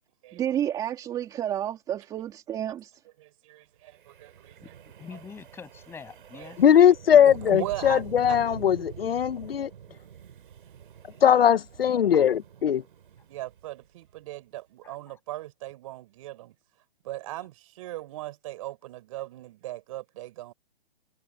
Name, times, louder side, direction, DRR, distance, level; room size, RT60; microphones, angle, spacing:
voice 1, 0.3-2.9, right 10 dB, 10° right, 2.9 m, -30 dB
voice 2, 3.2-4.6 5.1-5.2 6.3-6.9 7.2-8.0 8.3-8.4 13.3-16.5 17.0-20.5, right 16 dB, 30° right, 4.6 m, -39 dB
Wind, 3.9-14.2, right 8 dB, 55° right, 7.7 m, -46 dB
voice 3, 4.6-6.6 12.1-12.2 14.8-15.2 17.3-17.5, left 6 dB, 10° left, 7.5 m, -45 dB
voice 4, 6.6-9.7 11.2-12.8, left 9 dB, 65° left, 1.0 m, -20 dB
hypercardioid pair, 165°, 31 cm